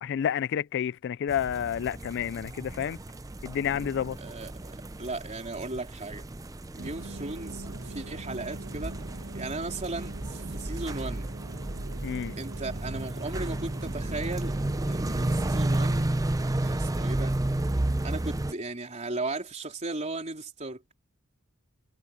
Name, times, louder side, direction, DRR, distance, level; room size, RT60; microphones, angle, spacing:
voice 1, 0.0-3.0 3.4-4.2 12.0-12.4, left 9 dB, 55° left, 0.3 m, -30 dB
sound 1, 1.3-18.5, right 1 dB, 15° right, 0.5 m, -32 dB
voice 2, 4.2-6.3 6.7-9.0 9.3-11.3 12.4-14.6 14.9-17.3 18.0-20.8, right 2 dB, 35° right, 3.7 m, -36 dB
sound 2, 6.8-16.0, right 2 dB, 70° right, 1.5 m, -43 dB
head